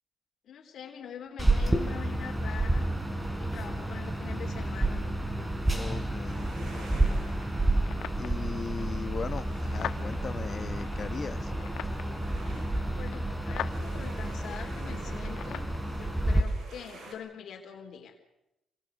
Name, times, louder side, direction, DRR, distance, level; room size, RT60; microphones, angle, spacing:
voice 1, 0.4-2.9 3.4-5.1 12.7-18.2, left 8 dB, 65° left, 3 dB, 3.6 m, -44 dB
sound 1, 1.4-16.4, right 1 dB, 10° right, 4.0 m, -30 dB
voice 2, 5.7-7.2 8.2-11.5, left 5 dB, 40° left, 12 dB, 1.2 m, -39 dB
sound 2, 6.2-17.1, right 3 dB, 70° right, 7.7 m, -52 dB
sound 3, 6.7-15.8, left 11 dB, 85° left, 1.1 m, -44 dB
27.0 x 24.5 x 6.6 m, 0.89 s
cardioid pair, 115°, 0 cm